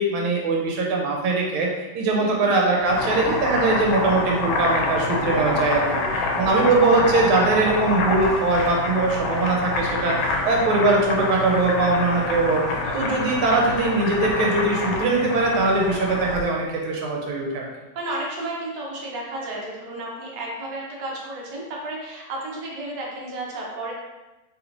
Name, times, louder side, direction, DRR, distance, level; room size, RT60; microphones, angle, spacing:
voice 1, 0.0-1.7 1.9-6.0 6.3-12.6 12.9-17.6, right 3 dB, 85° right, -1 dB, 1.5 m, -21 dB
voice 2, 2.2-2.5 6.1-6.7 10.3-10.4 12.8-13.1 17.3-17.5 17.9-23.9, right 2 dB, 65° right, -3 dB, 1.2 m, -33 dB
Boiling, 2.7-16.5, left 3 dB, 80° left, 1.3 m, -26 dB
3.5 x 3.0 x 2.5 m, 1.1 s
omnidirectional pair, 2.2 m